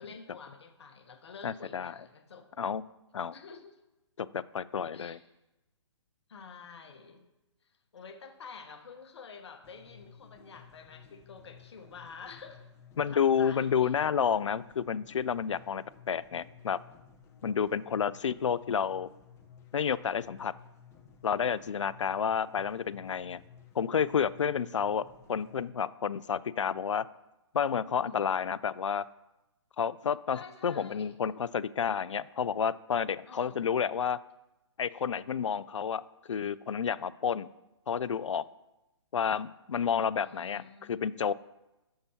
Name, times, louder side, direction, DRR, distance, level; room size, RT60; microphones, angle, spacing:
voice 1, 0.0-2.5 3.3-3.8 4.9-5.2 6.3-7.2 7.9-12.6 13.0-13.9 28.0-28.3 30.3-31.2 33.3-33.7 40.2-41.2, left 5 dB, 65° left, 6 dB, 1.0 m, -49 dB
voice 2, 1.4-1.9 2.6-2.8 3.1-3.3 4.2-5.2 13.0-16.8 17.4-19.1 19.7-20.5 21.2-23.4 23.7-27.1 27.5-29.1 29.8-34.2 34.8-36.0 36.3-37.5 37.9-38.4 39.1-41.3, left 7 dB, 85° left, 19 dB, 0.4 m, -30 dB
sound 1, 9.6-25.6, left 7 dB, 20° left, 0.9 m, -56 dB
13.5 x 5.7 x 2.8 m, 0.99 s
hypercardioid pair, 140°, 15 cm